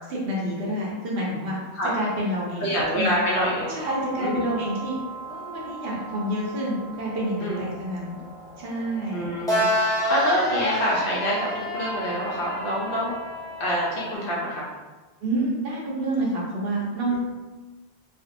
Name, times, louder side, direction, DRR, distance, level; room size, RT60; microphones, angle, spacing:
voice 1, 0.1-1.6 1.9-3.1 3.7-5.0 5.3-8.2 8.6-9.3 15.2-17.2, right 1 dB, 65° right, -4 dB, 0.8 m, -28 dB
voice 2, 2.6-3.8 4.2-4.5 7.4-7.6 9.1-13.1 13.6-14.7, equal, 60° left, -5 dB, 0.7 m, -26 dB
sound 1, 3.8-14.1, equal, 5° left, 0.4 m, -30 dB
2.5 x 2.0 x 2.5 m, 1.2 s
omnidirectional pair, 1.1 m